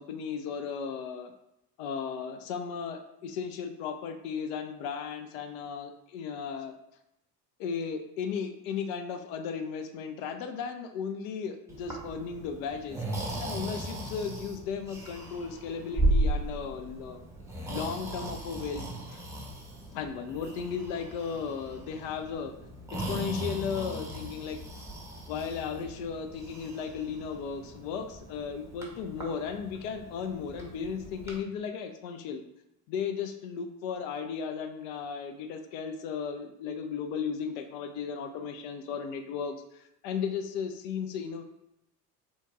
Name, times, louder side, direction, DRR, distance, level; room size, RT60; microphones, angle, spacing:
voice 1, 0.0-1.3 1.8-6.7 7.6-13.0 13.4-17.2 17.7-19.2 19.9-22.5 22.9-24.6 25.3-32.4 32.9-41.4, left 6 dB, 60° left, 7 dB, 0.5 m, -35 dB
Breathing, 11.7-31.4, right 1 dB, 5° right, 0.8 m, -36 dB
4.3 x 2.9 x 2.3 m, 0.85 s
figure-of-eight pair, 60°, 48 cm